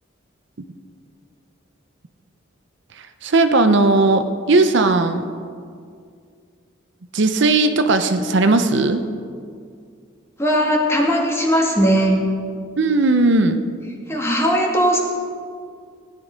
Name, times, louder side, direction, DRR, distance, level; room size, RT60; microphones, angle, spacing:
voice 1, 2.9-5.3 7.1-9.1 12.8-13.6, right 3 dB, 60° right, 8 dB, 0.7 m, -17 dB
voice 2, 10.4-12.2 14.1-15.0, equal, 15° left, 0 dB, 1.9 m, -18 dB
16.0 x 10.5 x 5.1 m, 2.2 s
head